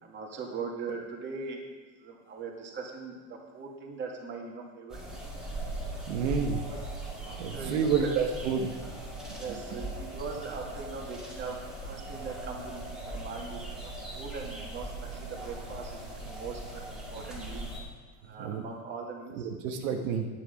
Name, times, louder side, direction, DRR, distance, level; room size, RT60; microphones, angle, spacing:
voice 1, 0.0-1.6 2.0-5.0 6.1-6.2 6.6-6.9 7.2-8.1 9.3-11.6 11.9-17.7 18.3-19.5, right 4 dB, 30° right, 0 dB, 2.0 m, -40 dB
sound 1, 4.9-17.8, right 1 dB, ahead, 2.1 m, -39 dB
voice 2, 6.1-6.6 7.4-8.7 18.4-18.6 19.4-20.3, right 6 dB, 85° right, 3 dB, 1.4 m, -29 dB
10.0 x 9.4 x 5.2 m, 1.3 s
cardioid pair, 155°, 39 cm